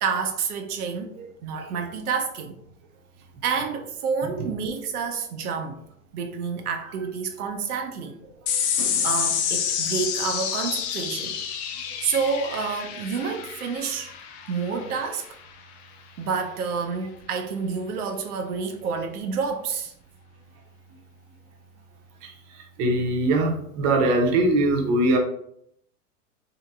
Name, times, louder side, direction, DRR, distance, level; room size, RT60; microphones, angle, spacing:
voice 1, 0.0-1.1 1.4-2.5 3.4-5.8 6.1-8.2 8.8-11.4 12.0-14.1 14.5-15.3 16.2-19.9, right 5 dB, 80° right, 0.6 m, -29 dB
sound 1, 8.5-15.2, left 8 dB, 50° left, 0.5 m, -28 dB
voice 2, 22.8-25.2, right 2 dB, 35° right, 0.7 m, -21 dB
2.8 x 2.8 x 2.3 m
hypercardioid pair, 105°, 44 cm